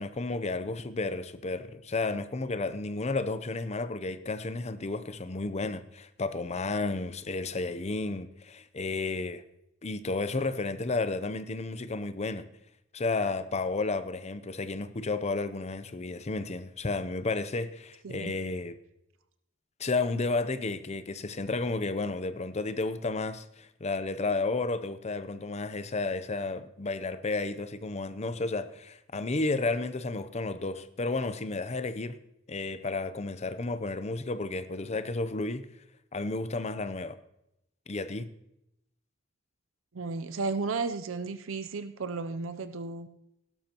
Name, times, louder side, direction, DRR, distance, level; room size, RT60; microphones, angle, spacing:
voice 1, 0.0-9.4 9.8-12.5 12.9-18.8 19.8-32.2 32.5-35.7 36.1-37.2 37.9-38.3, left 3 dB, 35° left, 0.6 m, -32 dB
voice 2, 39.9-43.1, right 4 dB, 75° right, 0.6 m, -34 dB
17.0 x 12.0 x 3.0 m
head